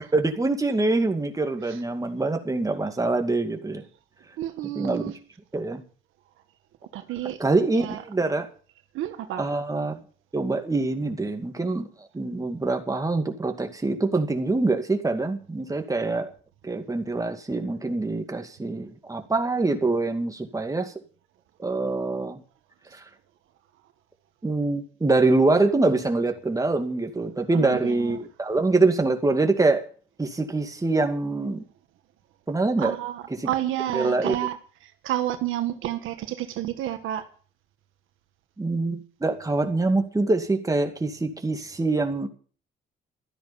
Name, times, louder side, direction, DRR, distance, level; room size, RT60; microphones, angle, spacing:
voice 1, 0.1-3.8 4.8-5.1 5.5-5.8 7.4-8.5 9.4-10.0 10.3-11.9 12.1-16.3 16.6-20.9 21.6-22.4 22.9-23.0 24.4-29.8 30.2-31.6 32.5-32.9 33.4-33.5 33.9-34.4 38.6-42.3, right 3 dB, 15° right, 5 dB, 2.3 m, -24 dB
voice 2, 4.4-5.2 6.9-7.4 7.7-8.0 8.9-9.5 27.5-28.2 32.8-34.6 34.8-37.2, right 12 dB, 85° right, 8 dB, 1.5 m, -30 dB
13.5 x 10.0 x 7.1 m, 0.42 s
cardioid pair, 90°, 20 cm